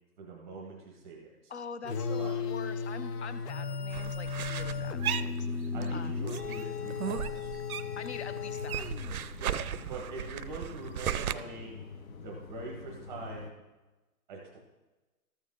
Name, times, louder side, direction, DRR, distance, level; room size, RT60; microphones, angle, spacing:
voice 1, 0.2-1.5 1.8-2.4 5.7-7.5 9.4-11.9 12.2-13.6 14.3-14.6, right 3 dB, 5° right, -2 dB, 0.8 m, -43 dB
voice 2, 1.5-6.1 8.0-8.8, left 5 dB, 45° left, 12 dB, 0.6 m, -44 dB
sound 1, 1.9-9.3, left 5 dB, 80° left, 1.1 m, -35 dB
sound 2, 3.9-6.0 6.3-8.1 8.4-11.3, right 10 dB, 65° right, 0.5 m, -36 dB
sound 3, 4.6-13.5, left 4 dB, 60° left, 1.3 m, -47 dB
13.5 x 6.3 x 3.7 m, 1.1 s
hypercardioid pair, 170°, 46 cm